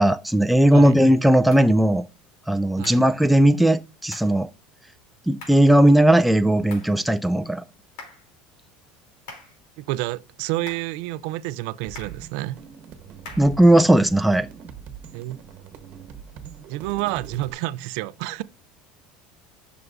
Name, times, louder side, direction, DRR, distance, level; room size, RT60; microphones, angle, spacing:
voice 1, 0.0-2.0 2.5-4.5 5.3-7.6 13.4-14.5, right 1 dB, ahead, 0.3 m, -17 dB
sound 1, 1.5-1.7 2.8-3.1 4.1-4.4 5.4-5.7 6.7-7.0 8.0-8.3 9.3-9.6 10.7-11.0 11.9-12.2 13.2-13.6, left 3 dB, 80° left, 3.1 m, -43 dB
voice 2, 9.8-12.6 15.1-15.4 16.7-18.4, right 17 dB, 70° right, 0.4 m, -29 dB
sound 2, 11.9-17.5, right 7 dB, 45° right, 1.2 m, -42 dB
11.0 x 5.9 x 2.6 m
supercardioid pair, 145°, 4 cm